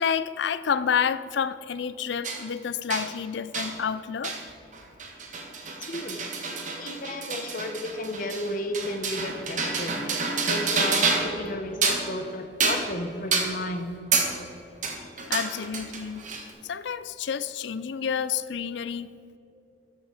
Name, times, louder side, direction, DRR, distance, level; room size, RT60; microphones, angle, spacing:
voice 1, 0.0-4.4 15.3-16.3 16.6-19.1, left 7 dB, 65° left, 0.4 m, -29 dB
sound 1, 2.2-2.4 2.9-3.1 3.5-3.7 4.2-4.4 4.7-11.4 11.7-12.1 12.6-12.9 13.3-13.5 14.1-14.3 14.8-16.5, right 4 dB, 40° right, 1.4 m, -28 dB
voice 2, 5.8-6.2 6.7-10.1 10.5-13.9, left 1 dB, 45° left, 0.9 m, -33 dB
13.5 x 6.6 x 4.9 m
head